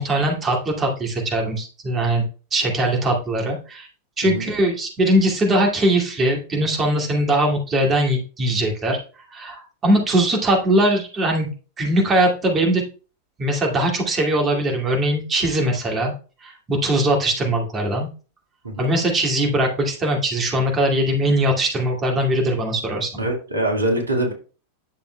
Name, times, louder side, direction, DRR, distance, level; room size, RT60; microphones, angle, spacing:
voice 1, 0.0-2.2 2.5-3.9 4.2-9.0 9.3-11.5 11.8-12.8 13.4-16.1 16.4-18.1 18.8-23.1, right 1 dB, 20° right, 0 dB, 2.3 m, -21 dB
voice 2, 23.2-24.3, right 1 dB, 75° right, 2 dB, 2.1 m, -23 dB
10.5 x 6.8 x 2.3 m, 0.36 s
figure-of-eight pair, 90°, 0 cm